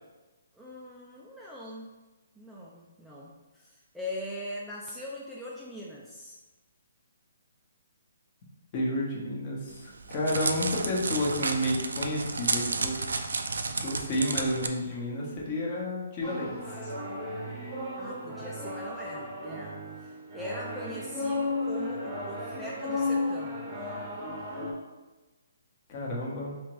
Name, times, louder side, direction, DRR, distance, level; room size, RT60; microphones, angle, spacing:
voice 1, 0.5-1.9 2.4-6.3 18.0-23.7, left 1 dB, ahead, -6 dB, 0.3 m, -41 dB
voice 2, 8.7-13.0 13.8-16.9 25.9-26.6, left 1 dB, 35° left, -3 dB, 0.9 m, -31 dB
Crackle, 9.7-14.7, right 3 dB, 80° right, 0.4 m, -31 dB
sound 1, 16.2-24.7, left 2 dB, 25° right, 0.7 m, -34 dB
3.3 x 2.9 x 3.1 m, 1.2 s
hypercardioid pair, 155°, 0 cm